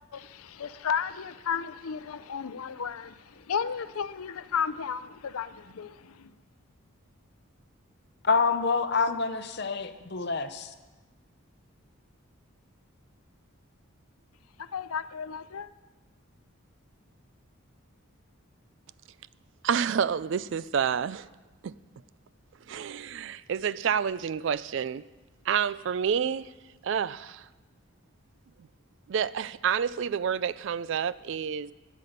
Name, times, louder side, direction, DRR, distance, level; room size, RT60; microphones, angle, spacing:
voice 1, 0.1-6.3 14.6-15.7, left 7 dB, 90° left, 14 dB, 0.5 m, -33 dB
voice 2, 8.2-10.7, left 4 dB, 50° left, 10 dB, 0.7 m, -27 dB
voice 3, 19.6-21.3 21.6-21.7 22.7-25.0 25.5-26.5 26.8-27.5 29.1-31.7, right 7 dB, 60° right, 18 dB, 0.3 m, -29 dB
12.5 x 8.3 x 6.7 m, 1.2 s
head